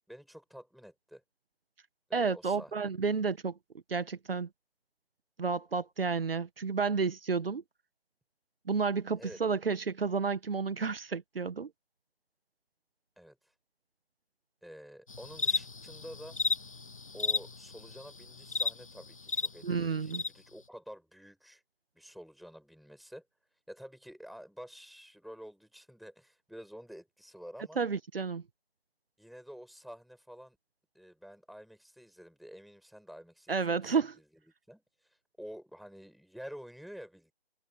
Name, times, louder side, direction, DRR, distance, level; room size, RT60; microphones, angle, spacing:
voice 1, 0.1-1.2 2.1-2.9 9.2-9.4 13.2-13.4 14.6-16.4 17.1-21.6 21.9-23.3 23.7-27.8 29.2-30.6 30.9-34.2 34.7-37.3, equal, ahead, 5.7 m, -49 dB
voice 2, 2.1-3.5 3.9-4.5 5.4-7.6 8.7-11.7 19.6-20.2 27.8-28.4 33.5-34.1, right 5 dB, 65° right, 1.3 m, -31 dB
sound 1, 15.1-19.5 20.1-20.3, left 4 dB, 30° left, 0.8 m, -33 dB
hypercardioid pair, 175°, 32 cm